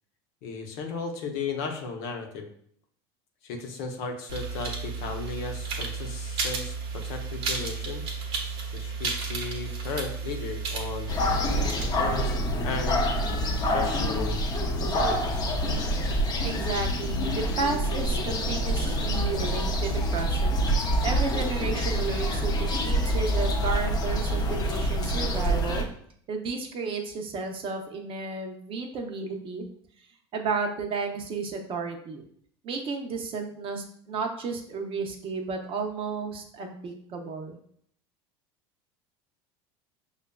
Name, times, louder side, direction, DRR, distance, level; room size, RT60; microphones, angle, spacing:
voice 1, 0.4-2.5 3.4-8.1 8.7-11.1 11.7-12.3 12.6-13.1 13.7-14.4 14.8-15.5, left 4 dB, 65° left, 3 dB, 0.8 m, -35 dB
sound 1, 4.3-11.8, right 4 dB, 70° right, 0.9 m, -33 dB
sound 2, 11.1-25.8, equal, 30° left, 0.7 m, -26 dB
voice 2, 16.4-20.6 21.0-25.9 26.3-29.6 30.3-32.2 32.6-37.6, right 4 dB, 40° right, 4 dB, 0.7 m, -33 dB
5.5 x 2.4 x 2.2 m, 0.64 s
hypercardioid pair, 85°, 13 cm